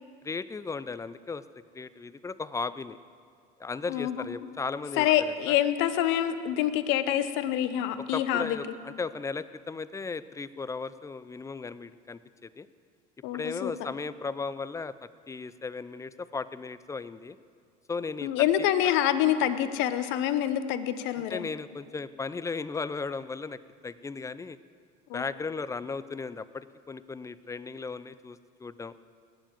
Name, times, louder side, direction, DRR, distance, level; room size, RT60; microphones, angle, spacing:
voice 1, 0.2-1.4 1.7-3.0 3.6-5.6 8.0-12.7 13.3-14.9 15.3-17.4 17.9-18.3 18.6-18.7 21.2-24.6 25.1-28.9, left 4 dB, 15° left, 16 dB, 0.5 m, -36 dB
voice 2, 3.9-4.2 5.0-8.6 13.2-13.7 18.2-21.5 25.1-25.2, left 11 dB, 65° left, 12 dB, 0.9 m, -26 dB
19.5 x 7.3 x 7.6 m, 2.2 s
hypercardioid pair, 80°, 21 cm